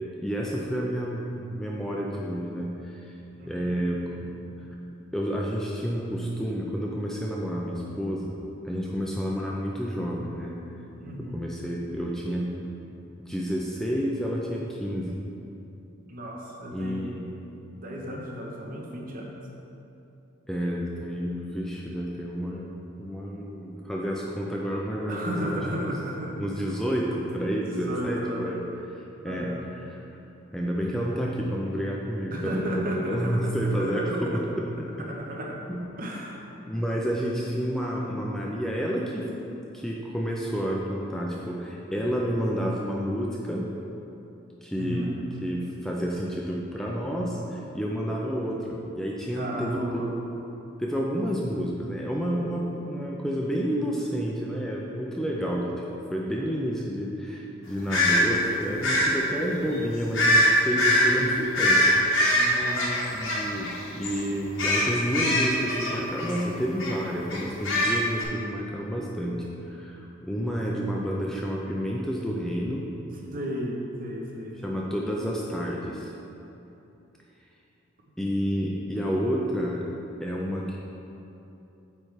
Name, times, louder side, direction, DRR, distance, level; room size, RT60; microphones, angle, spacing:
voice 1, 0.2-3.2 3.5-4.4 5.1-8.3 8.6-10.6 11.2-12.5 13.2-15.1 16.7-17.3 20.5-22.7 23.0-26.0 26.4-28.6 28.9-29.5 29.8-30.0 30.5-34.4 35.7-36.0 36.7-39.3 39.7-43.7 44.6-45.1 45.4-50.0 50.8-55.7 56.1-61.8 63.1-72.8 74.6-76.1 78.2-79.8 80.2-80.8, equal, ahead, -3 dB, 0.4 m, -30 dB
voice 2, 3.3-3.8 11.0-11.4 16.1-17.2 17.8-19.3 25.1-26.4 27.5-28.5 29.2-29.6 32.3-34.4 34.9-35.6 36.0-36.4 44.8-45.2 49.3-50.1 62.3-63.0 73.3-74.6, equal, 45° right, -2 dB, 0.9 m, -34 dB
sound 1, 57.9-58.2 58.8-59.1 60.1-60.5 60.8-61.1 61.5-63.8 64.0-64.2 64.6-66.4 66.8-66.9 67.3-68.2, left 1 dB, 80° left, 1.3 m, -22 dB
8.6 x 3.3 x 4.8 m, 2.9 s
head